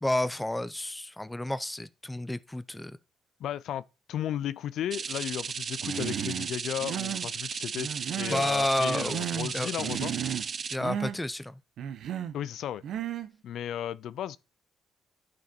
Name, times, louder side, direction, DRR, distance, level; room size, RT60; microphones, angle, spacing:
voice 1, 0.0-3.0 8.3-9.2 9.5-9.7 10.7-11.6, left 1 dB, 10° left, 0.6 m, -30 dB
voice 2, 3.4-3.8 4.1-10.1 12.3-12.8 13.4-14.4, left 11 dB, 75° left, 0.5 m, -34 dB
sound 1, 4.9-10.8, right 6 dB, 45° right, 0.4 m, -35 dB
Human voice, 5.8-6.5 6.8-7.3 7.8-8.5 8.8-9.5 9.8-10.5 10.8-11.2 11.8-12.4 12.8-13.3, right 9 dB, 75° right, 1.0 m, -34 dB
11.0 x 4.8 x 4.4 m
cardioid pair, 90°, 0 cm